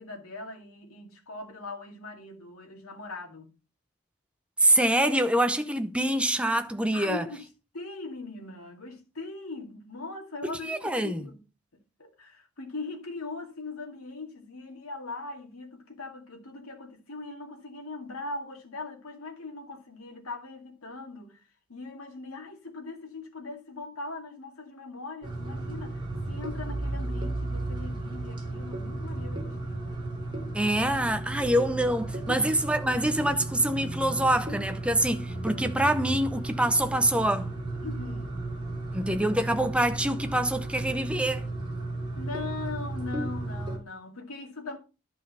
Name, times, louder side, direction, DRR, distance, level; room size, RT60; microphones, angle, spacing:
voice 1, 0.0-3.5 6.9-7.5 7.7-11.4 12.0-21.4 21.7-29.8 32.3-32.5 37.8-38.4 42.2-44.8, left 3 dB, 90° left, 2.3 m, -40 dB
voice 2, 4.6-7.3 10.4-11.3 30.5-37.5 38.9-41.5, right 1 dB, 5° right, 0.7 m, -25 dB
sound 1, 25.2-43.8, right 2 dB, 20° right, 3.0 m, -34 dB
11.5 x 5.3 x 5.5 m
head